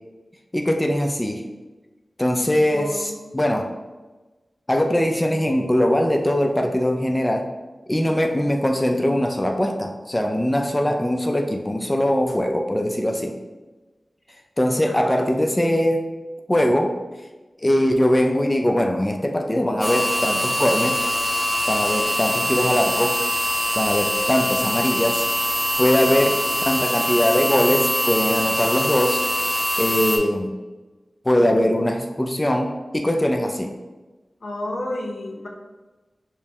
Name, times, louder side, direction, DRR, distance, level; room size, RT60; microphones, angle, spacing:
voice 1, 0.5-1.4 2.2-3.6 4.7-7.5 7.9-13.4 14.6-16.1 16.5-16.9 17.6-21.0 21.7-23.2 23.8-25.3 25.8-29.2 29.8-30.5 31.2-33.8, left 1 dB, 20° left, 3 dB, 0.4 m, -21 dB
voice 2, 2.7-3.2 14.9-15.2 25.8-26.5 34.4-35.5, left 1 dB, 80° left, 0 dB, 0.6 m, -32 dB
sound 1, 19.8-30.2, equal, 10° right, 0.7 m, -23 dB
4.4 x 2.0 x 3.4 m, 1.2 s
cardioid pair, 50°, 0 cm